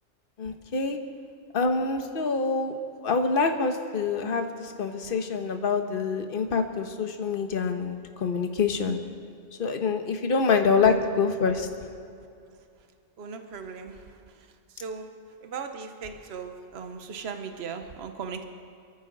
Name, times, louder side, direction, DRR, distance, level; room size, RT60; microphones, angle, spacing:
voice 1, 0.4-1.0 1.5-9.0 9.6-11.7, left 4 dB, 45° left, 6 dB, 1.3 m, -26 dB
voice 2, 12.2-12.9 13.2-18.4, right 5 dB, 55° right, 7 dB, 1.2 m, -39 dB
24.5 x 14.0 x 4.0 m, 2.4 s
omnidirectional pair, 1.3 m